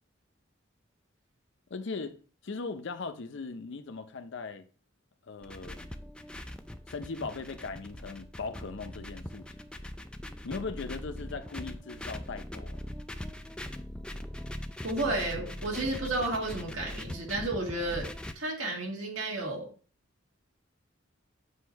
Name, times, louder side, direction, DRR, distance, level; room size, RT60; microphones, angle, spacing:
voice 1, 1.7-2.2 2.4-4.7 5.3-5.9 6.9-9.5 10.4-12.8, left 4 dB, 65° left, 0.6 m, -39 dB
sound 1, 5.4-18.3, left 1 dB, 5° left, 0.4 m, -41 dB
voice 2, 14.8-18.1 18.4-19.7, right 2 dB, 85° right, 1.9 m, -32 dB
8.1 x 2.7 x 4.5 m
head